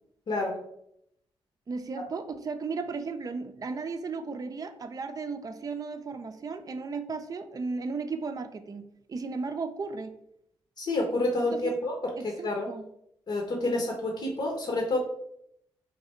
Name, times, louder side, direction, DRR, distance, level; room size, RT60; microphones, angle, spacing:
voice 1, 0.3-0.6 10.8-12.1 12.4-12.7 13.3-15.0, left 2 dB, 55° left, 0 dB, 0.9 m, -28 dB
voice 2, 1.7-10.1 11.5-11.8 12.2-12.8, right 4 dB, 35° right, 8 dB, 0.4 m, -35 dB
3.2 x 2.7 x 4.3 m, 0.76 s
supercardioid pair, 45°, 11 cm